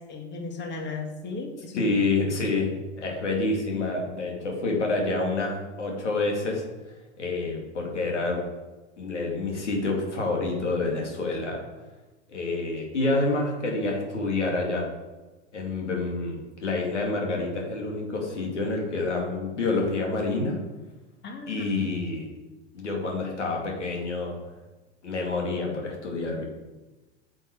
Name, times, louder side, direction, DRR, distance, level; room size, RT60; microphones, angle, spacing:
voice 1, 0.1-1.9 21.2-21.9, left 3 dB, 30° left, 2 dB, 1.9 m, -36 dB
voice 2, 1.7-6.6 7.2-8.4 9.0-11.6 12.3-14.9 15.5-20.6 21.5-22.3 22.7-24.4 25.0-26.4, left 3 dB, 90° left, 0 dB, 2.4 m, -28 dB
9.3 x 6.3 x 4.7 m, 1.1 s
hypercardioid pair, 90°, 34 cm